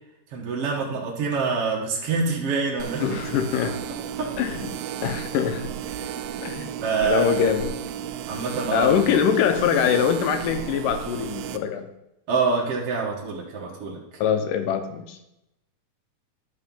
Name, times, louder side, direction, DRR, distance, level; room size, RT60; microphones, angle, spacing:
voice 1, 0.3-3.2 4.2-4.3 5.9-6.4 6.8-7.4 8.3-8.9 12.3-14.0, right 5 dB, 55° right, -3 dB, 1.9 m, -26 dB
sound 1, 2.8-11.6, right 9 dB, 85° right, 2.3 m, -33 dB
voice 2, 3.0-3.8 4.4-4.7 5.0-5.7 6.4-6.7 7.0-7.8 8.7-11.9 14.2-15.3, left 8 dB, 80° left, 7 dB, 2.3 m, -23 dB
12.0 x 4.4 x 5.4 m, 0.86 s
omnidirectional pair, 4.0 m